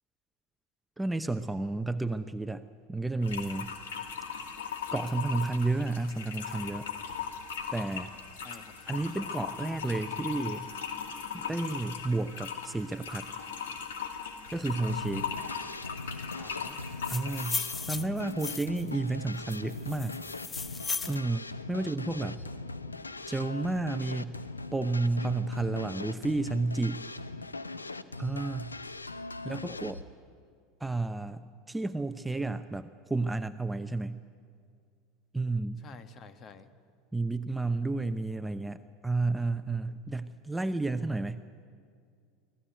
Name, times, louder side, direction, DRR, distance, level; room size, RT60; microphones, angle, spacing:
voice 1, 1.0-2.6 2.9-3.7 4.9-6.9 7.7-8.1 8.9-10.7 11.3-13.3 14.5-15.2 17.1-20.2 21.1-22.4 23.3-24.3 24.7-27.0 28.2-28.7 29.4-30.0 30.8-34.2 35.3-35.8 37.1-38.8 39.0-41.4, right 2 dB, 10° right, 10 dB, 0.8 m, -31 dB
sound 1, 3.2-17.6, left 7 dB, 70° left, 2.2 m, -39 dB
voice 2, 8.3-9.4 16.3-16.8 29.5-29.9 35.8-36.7, left 5 dB, 35° left, 10 dB, 1.5 m, -51 dB
sound 2, 14.9-30.0, left 3 dB, 90° left, 0.7 m, -40 dB
sound 3, 16.8-18.9 19.5-21.2, left 4 dB, 20° left, 0.8 m, -36 dB
24.0 x 17.0 x 9.3 m, 2.2 s
figure-of-eight pair, 80°, 0 cm